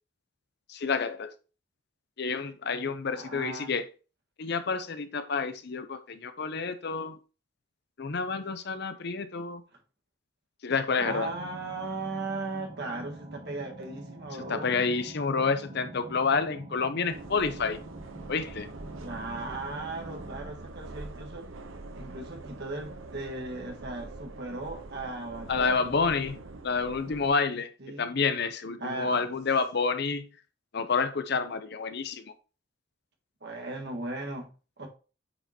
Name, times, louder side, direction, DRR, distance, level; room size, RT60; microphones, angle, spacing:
voice 1, 0.7-1.3 2.2-3.9 4.4-7.2 8.0-9.6 10.6-11.4 14.5-17.8 18.3-18.7 25.5-26.4 26.6-27.7 28.0-30.3 30.7-32.3, left 4 dB, 50° left, 0.6 m, -29 dB
voice 2, 3.1-3.7 11.0-14.8 19.0-21.5 21.9-25.9 27.8-28.2 28.8-29.3 33.4-34.5 34.8-34.9, right 2 dB, 55° right, 1.6 m, -37 dB
sound 1, 11.0-20.5, right 2 dB, 35° right, 1.6 m, -46 dB
sound 2, 17.1-27.3, right 2 dB, 70° right, 0.8 m, -44 dB
8.6 x 5.0 x 2.9 m
head